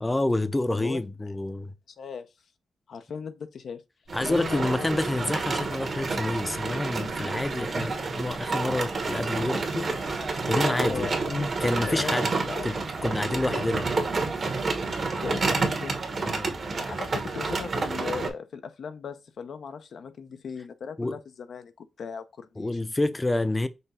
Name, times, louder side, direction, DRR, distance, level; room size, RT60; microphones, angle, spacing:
voice 1, 0.0-1.7 4.1-9.9 10.5-11.1 11.6-12.3 12.6-13.9 16.2-16.5 21.0-21.2 22.6-23.7, left 2 dB, 15° left, 0.5 m, -28 dB
voice 2, 0.7-1.0 2.0-2.3 2.9-3.8 4.2-4.9 10.5-12.7 13.0-13.7 15.1-15.9 16.8-22.8, left 6 dB, 75° left, 0.5 m, -38 dB
Buzz, 4.0-11.8, left 2 dB, 90° left, 1.4 m, -44 dB
sound 1, 4.1-18.3, right 3 dB, 50° right, 1.2 m, -29 dB
5.5 x 2.2 x 4.1 m
cardioid pair, 70°, 0 cm